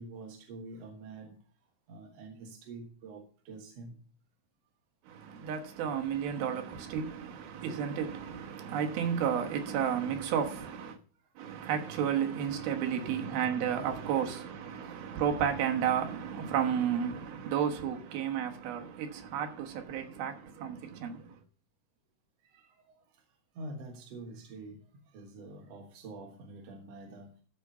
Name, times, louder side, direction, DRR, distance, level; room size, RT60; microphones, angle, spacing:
voice 1, 0.0-1.3 1.9-3.9 9.1-9.2 13.1-13.5 22.4-22.7 23.6-24.8 25.1-27.3, right 2 dB, 55° right, 2.0 m, -46 dB
voice 2, 5.1-11.0 11.4-21.4, right 8 dB, 80° right, 3.2 m, -32 dB
13.0 x 4.9 x 5.6 m
omnidirectional pair, 4.3 m